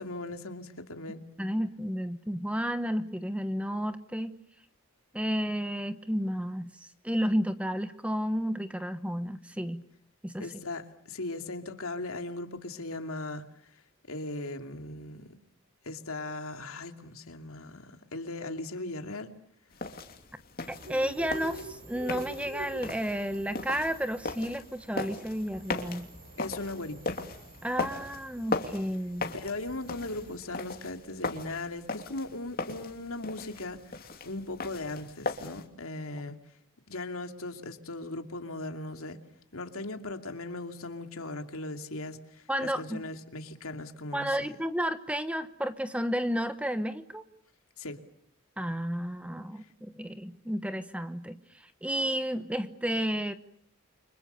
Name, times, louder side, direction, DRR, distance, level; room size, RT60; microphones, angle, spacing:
voice 1, 0.0-1.2 10.4-13.7 14.1-15.3 15.8-19.3 26.4-27.2 29.3-33.8 34.2-36.4 36.9-39.2 39.5-44.5 47.8-48.0, left 2 dB, 75° left, 2.6 m, -38 dB
voice 2, 1.4-4.4 5.1-6.7 7.0-9.8 10.2-10.5 20.7-26.1 27.6-29.3 42.5-43.0 44.1-47.2 48.6-51.4 51.8-53.3, equal, 5° right, 1.1 m, -32 dB
sound 1, 19.7-35.7, left 3 dB, 45° left, 2.8 m, -38 dB
sound 2, 20.6-30.4, right 3 dB, 40° right, 6.0 m, -47 dB
30.0 x 25.5 x 6.9 m
head